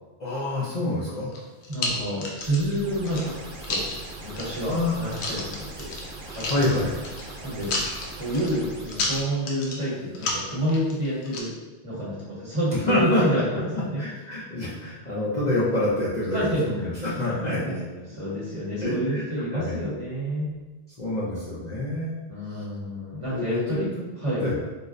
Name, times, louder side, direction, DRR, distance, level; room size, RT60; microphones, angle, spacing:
voice 1, 0.2-1.3 4.6-5.0 6.3-7.0 12.9-13.2 14.0-17.7 18.8-19.2 19.5-19.8 21.0-22.1 22.5-22.6 23.3-23.9 24.4-24.5, left 1 dB, 50° left, -8 dB, 0.6 m, -27 dB
sound 1, 1.3-2.7 3.0-4.0 4.4-4.7 5.1-6.1 6.3-7.3 7.6-8.5 8.9-9.8 10.1-11.4, left 2 dB, 85° left, 0.9 m, -31 dB
voice 2, 1.7-3.3 3.7-3.8 4.2-5.9 6.3-6.5 7.4-7.7 8.2-11.5 11.8-13.6 13.9-14.0 16.3-16.6 16.9-17.1 17.4-20.5 22.3-23.9 24.2-24.4, right 1 dB, 35° right, -8 dB, 1.0 m, -28 dB
sound 2, 2.4-9.2, right 2 dB, 60° right, 0.7 m, -41 dB
3.9 x 2.1 x 2.5 m, 1.2 s
omnidirectional pair, 1.1 m